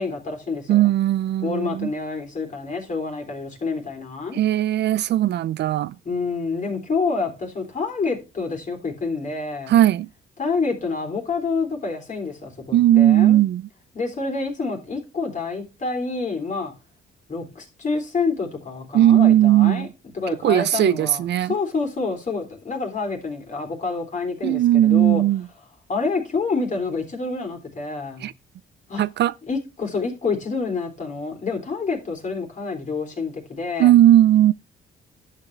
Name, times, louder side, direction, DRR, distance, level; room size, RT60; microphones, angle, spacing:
voice 1, 0.0-0.9 1.4-4.4 6.0-9.8 10.4-13.4 13.9-16.7 17.3-19.9 20.1-25.2 25.9-28.3 28.9-29.0 29.5-34.0, left 4 dB, 40° left, 3.5 m, -28 dB
voice 2, 0.7-1.9 4.3-5.9 9.7-10.1 12.7-13.7 18.9-19.9 20.4-21.5 24.4-25.5 28.2-28.3 29.0-29.3 33.8-34.5, right 13 dB, 60° right, 0.4 m, -17 dB
11.0 x 7.4 x 3.3 m
cardioid pair, 90°, 20 cm